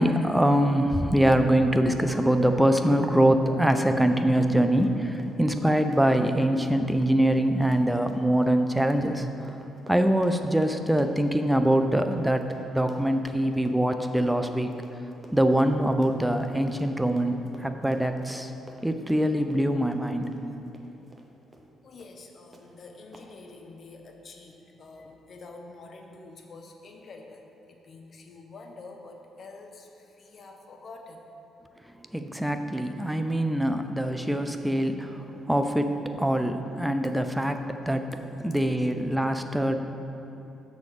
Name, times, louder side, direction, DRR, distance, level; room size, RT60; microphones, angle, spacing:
voice 1, 0.0-9.5 9.9-12.4 12.7-14.7 15.3-18.5 18.8-20.2 32.0-39.8, right 1 dB, 5° right, 7 dB, 0.5 m, -24 dB
Run, 4.8-21.3 21.5-21.7 22.0-22.2 22.5-22.6 23.1-23.3, right 1 dB, 25° right, 0.9 m, -50 dB
voice 2, 21.8-31.3, left 3 dB, 50° left, 3 dB, 0.9 m, -47 dB
6.9 x 4.2 x 6.7 m, 3.0 s
cardioid pair, 90°, 0 cm